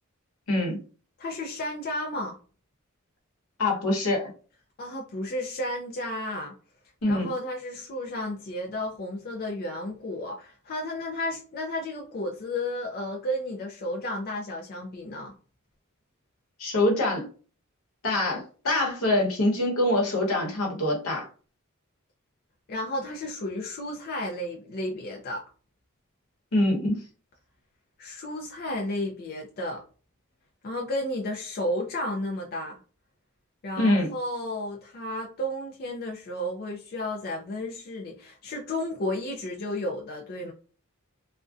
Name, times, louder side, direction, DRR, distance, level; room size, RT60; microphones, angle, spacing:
voice 1, 0.5-0.8 3.6-4.3 7.0-7.3 16.6-17.3 18.0-21.3 26.5-27.0 33.8-34.1, left 1 dB, 75° left, 0.9 m, -24 dB
voice 2, 1.2-2.4 4.8-6.6 7.1-15.3 22.7-25.4 28.0-29.8 30.6-32.8 33.6-40.5, left 1 dB, 45° left, 0.4 m, -32 dB
2.5 x 2.1 x 2.3 m
head